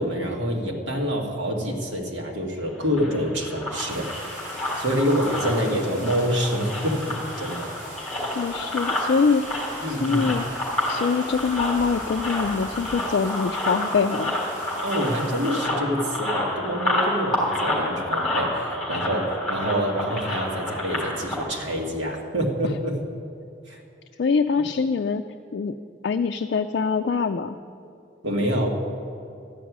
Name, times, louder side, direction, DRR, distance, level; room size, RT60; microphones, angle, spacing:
voice 1, 0.0-4.1 4.7-7.7 9.8-10.3 14.8-22.9 23.7-23.8 28.2-28.7, equal, 85° right, 0 dB, 1.7 m, -26 dB
sound 1, 2.7-21.4, left 1 dB, 5° left, 3.6 m, -29 dB
sound 2, 3.9-15.6, right 1 dB, 70° right, 3.8 m, -42 dB
voice 2, 8.3-9.4 9.9-10.5 10.9-14.4 22.6-22.7 24.2-25.2 25.5-25.8 26.0-27.6, left 5 dB, 65° left, 6 dB, 0.3 m, -24 dB
12.5 x 6.0 x 9.4 m, 2.5 s
head